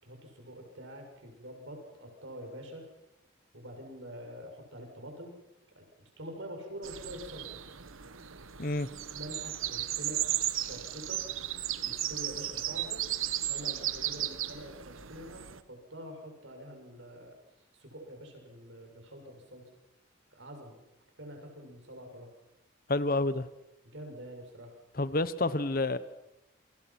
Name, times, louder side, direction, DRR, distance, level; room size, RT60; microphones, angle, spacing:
voice 1, 0.0-2.8 3.5-5.3 5.8-5.9 6.2-7.6 9.1-10.2 10.5-11.2 11.8-13.0 13.5-17.4 17.7-19.6 20.3-20.8 21.2-22.3 23.8-24.8, equal, 65° right, 3 dB, 7.0 m, -46 dB
sound 1, 6.8-15.6, right 12 dB, 90° right, 1.3 m, -35 dB
voice 2, 22.9-23.5 24.9-26.0, left 2 dB, 45° left, 15 dB, 1.0 m, -29 dB
28.5 x 25.0 x 6.0 m, 0.94 s
head